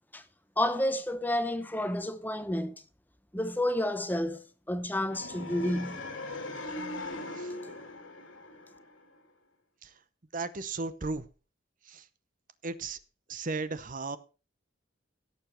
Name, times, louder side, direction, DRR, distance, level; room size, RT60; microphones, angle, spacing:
voice 1, 0.6-2.7 3.3-6.0, left 1 dB, 10° left, 0.8 m, -30 dB
sound 1, 5.1-9.2, left 2 dB, 85° left, 2.7 m, -40 dB
voice 2, 10.3-11.3 11.8-12.1 12.6-13.0 13.3-14.2, right 3 dB, 45° right, 0.8 m, -35 dB
17.0 x 7.1 x 4.4 m
head